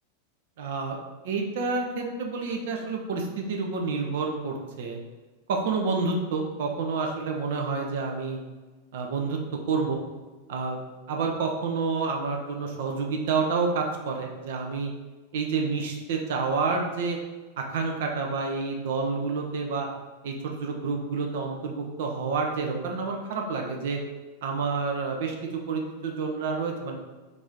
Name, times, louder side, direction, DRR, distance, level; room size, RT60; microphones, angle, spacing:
voice 1, 0.6-1.0 1.2-5.0 5.5-8.4 8.9-9.4 9.7-10.0 10.5-10.8 11.1-14.9 15.3-17.2 17.7-19.9 20.2-24.0 24.4-27.0, right 4 dB, 55° right, 1 dB, 0.4 m, -29 dB
3.0 x 2.6 x 3.5 m, 1.3 s
figure-of-eight pair, 90°, 0 cm